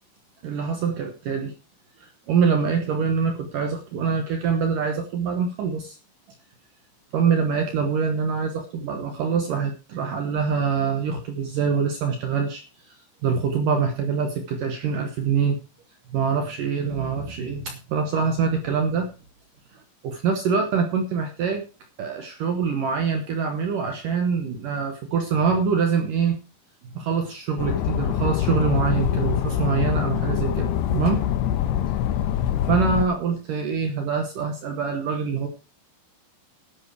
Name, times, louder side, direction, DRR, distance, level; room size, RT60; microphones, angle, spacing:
voice 1, 0.4-1.5 2.0-6.0 7.1-12.6 13.2-15.6 16.1-19.1 20.0-21.6 22.0-26.4 26.9-31.3 32.7-35.5, right 6 dB, 70° right, 5 dB, 2.0 m, -24 dB
sound 1, 27.6-33.1, left 10 dB, 75° left, 2.6 m, -24 dB
11.5 x 11.0 x 4.8 m, 0.34 s
omnidirectional pair, 5.4 m